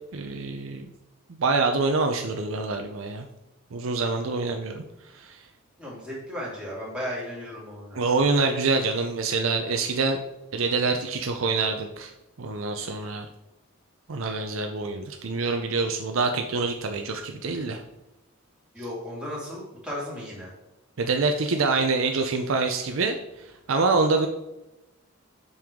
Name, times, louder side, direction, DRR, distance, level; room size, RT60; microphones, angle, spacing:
voice 1, 0.1-0.9 1.4-3.3 3.7-4.8 5.1-5.4 8.0-10.2 10.5-12.1 12.4-13.3 14.1-17.8 21.0-23.2 23.7-24.3, right 3 dB, 75° right, 5 dB, 0.6 m, -25 dB
voice 2, 5.8-8.0 18.7-20.5, equal, 5° right, -6 dB, 2.4 m, -35 dB
7.6 x 5.5 x 3.6 m, 0.95 s
head